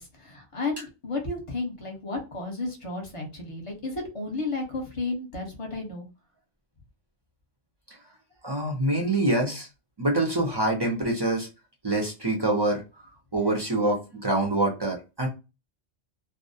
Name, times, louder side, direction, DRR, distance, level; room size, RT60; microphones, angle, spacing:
voice 1, 0.0-6.0, left 3 dB, 30° left, 2 dB, 0.8 m, -33 dB
voice 2, 8.4-9.7 10.0-11.5 11.8-12.8 13.3-15.3, right 2 dB, 35° right, 1 dB, 0.4 m, -25 dB
2.4 x 2.0 x 2.6 m, 0.27 s
omnidirectional pair, 1.2 m